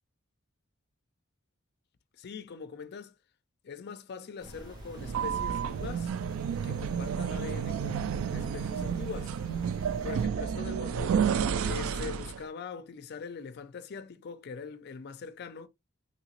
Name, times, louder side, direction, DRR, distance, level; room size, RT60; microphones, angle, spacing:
voice 1, 2.2-3.2 3.6-6.1 6.6-9.4 10.0-11.2 11.6-15.7, left 6 dB, 55° left, 0.4 m, -42 dB
sound 1, 4.4-10.3, right 1 dB, 20° right, 1.2 m, -47 dB
sound 2, 4.9-12.4, right 7 dB, 85° right, 0.3 m, -31 dB
2.9 x 2.9 x 2.9 m
head